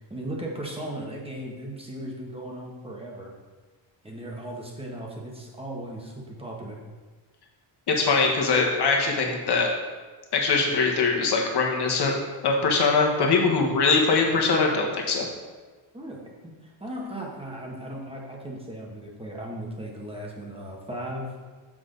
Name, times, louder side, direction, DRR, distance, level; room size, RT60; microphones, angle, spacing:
voice 1, 0.1-3.3 4.0-6.8 13.5-13.8 15.9-21.3, right 1 dB, 10° right, -2 dB, 1.5 m, -37 dB
voice 2, 7.9-9.7 10.3-12.1 12.4-15.3, left 4 dB, 55° left, 1 dB, 1.4 m, -22 dB
7.3 x 6.3 x 3.9 m, 1.4 s
cardioid pair, 130°, 46 cm